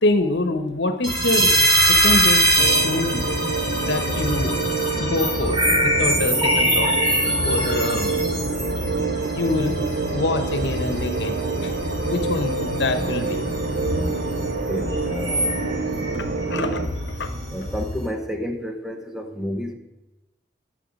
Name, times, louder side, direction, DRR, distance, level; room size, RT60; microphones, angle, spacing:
voice 1, 0.0-1.6 1.9-3.3 3.8-4.6 5.0-6.9 7.2-8.4 9.3-9.8 10.1-11.7 12.0-13.4 16.5-16.7 17.2-17.3, left 2 dB, 75° left, 8 dB, 0.9 m, -25 dB
sound 1, 1.0-18.1, equal, 30° right, 2.6 m, -24 dB
sound 2, 2.6-16.9, right 3 dB, 60° right, 0.6 m, -27 dB
sound 3, 3.0-17.8, equal, 90° right, 2.4 m, -36 dB
voice 2, 14.5-16.2 16.5-16.7 17.5-19.7, equal, 5° right, 5 dB, 0.7 m, -31 dB
11.5 x 6.6 x 5.2 m, 1.0 s
head